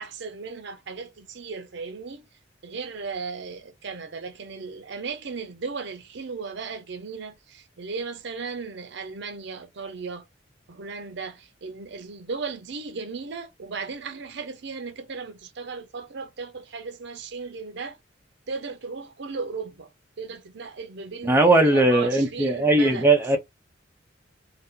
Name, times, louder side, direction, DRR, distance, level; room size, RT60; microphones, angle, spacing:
voice 1, 0.0-2.2 2.6-10.2 10.7-18.0 18.5-19.9 20.2-23.1, right 4 dB, 65° right, 0.6 m, -36 dB
voice 2, 21.2-23.4, right 2 dB, 10° right, 0.7 m, -19 dB
2.8 x 2.1 x 3.7 m
head